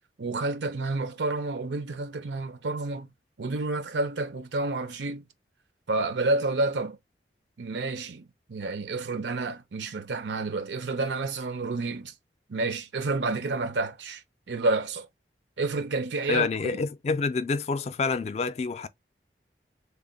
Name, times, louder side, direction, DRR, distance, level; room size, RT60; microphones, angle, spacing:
voice 1, 0.2-3.1 3.4-5.2 5.9-7.0 7.6-12.1 12.5-15.1 15.6-16.8, right 3 dB, 85° right, 0.6 m, -30 dB
voice 2, 16.3-18.9, left 4 dB, 40° left, 0.3 m, -27 dB
3.4 x 2.1 x 3.8 m
head